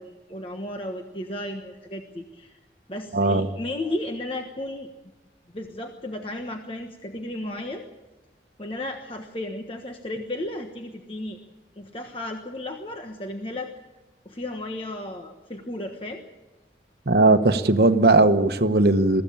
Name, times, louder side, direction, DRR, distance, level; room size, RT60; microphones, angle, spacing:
voice 1, 0.0-2.6 2.9-4.9 5.5-7.9 8.6-11.4 11.8-13.7 14.2-16.3, left 1 dB, 30° left, 3 dB, 1.3 m, -34 dB
voice 2, 3.1-3.5 17.1-19.2, right 2 dB, 60° right, 8 dB, 1.1 m, -18 dB
23.0 x 15.0 x 8.7 m, 1.1 s
head